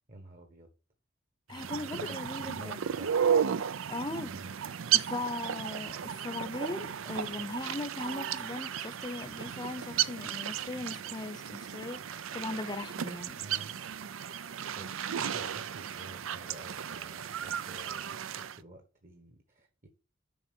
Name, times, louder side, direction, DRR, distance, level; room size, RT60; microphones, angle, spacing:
voice 1, 0.1-0.7 1.5-3.3 4.2-4.5 13.4-13.8 14.7-18.0 18.3-19.9, right 1 dB, 40° right, 1.3 m, -50 dB
voice 2, 1.5-2.9 3.9-4.3 4.9-13.4, left 2 dB, 20° left, 0.7 m, -39 dB
sound 1, 1.5-18.6, right 8 dB, 90° right, 0.5 m, -34 dB
7.0 x 4.8 x 6.0 m
head